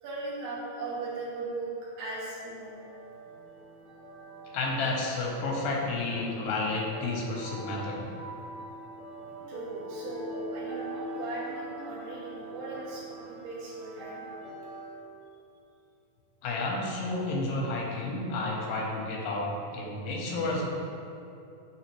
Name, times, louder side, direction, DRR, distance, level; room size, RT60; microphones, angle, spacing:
voice 1, 0.0-1.7 2.0-2.8 9.5-14.2, right 3 dB, 65° right, -9 dB, 1.8 m, -38 dB
sound 1, 2.7-15.0, right 1 dB, 40° right, 1.5 m, -43 dB
voice 2, 4.5-8.0 16.4-20.7, left 2 dB, 90° left, -2 dB, 2.3 m, -31 dB
5.9 x 2.9 x 3.0 m, 2.7 s
omnidirectional pair, 3.9 m